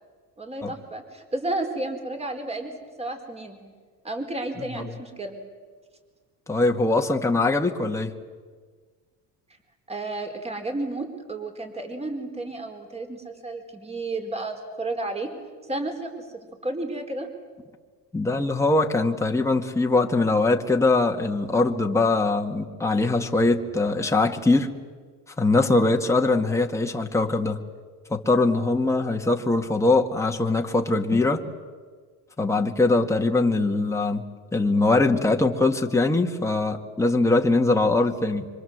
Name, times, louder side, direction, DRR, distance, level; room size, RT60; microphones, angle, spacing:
voice 1, 0.4-3.6 4.0-5.4 9.9-15.3 15.7-17.3, right 2 dB, 20° right, 5 dB, 4.4 m, -32 dB
voice 2, 6.5-8.1 18.1-24.7 25.4-27.6 28.1-31.5 32.4-34.2 34.5-38.5, left 2 dB, 10° left, 2 dB, 2.0 m, -22 dB
26.0 x 25.5 x 8.0 m, 1.5 s
cardioid pair, 115°, 34 cm